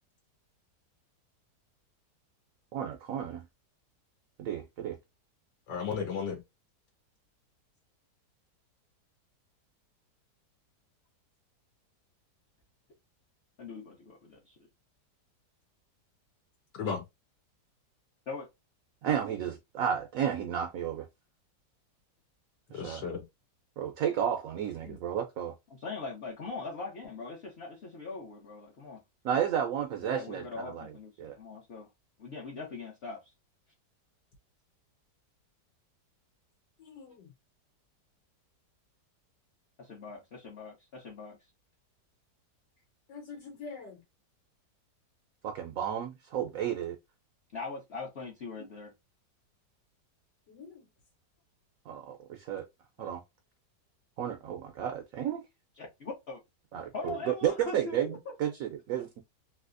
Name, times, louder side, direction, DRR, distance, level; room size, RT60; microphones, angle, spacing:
voice 1, 2.7-3.4 4.4-5.0 19.0-21.1 22.7-23.0 23.8-25.5 29.2-30.9 31.2-31.4 45.4-47.0 51.9-52.7 53.0-53.2 54.2-55.4 56.7-59.2, right 9 dB, 70° right, 0.9 m, -32 dB
voice 2, 5.7-6.4 16.7-17.0 22.7-23.2 24.8-25.0 36.8-37.3 43.1-44.0 50.5-50.8, left 6 dB, 85° left, 1.5 m, -37 dB
voice 3, 13.6-14.6 18.3-18.5 25.7-29.0 30.0-31.9 32.2-33.3 39.8-41.4 47.5-48.9 53.0-53.1 55.8-56.4 56.9-58.0 58.3-58.4, left 3 dB, 45° left, 0.9 m, -41 dB
3.3 x 2.8 x 2.5 m
omnidirectional pair, 1.8 m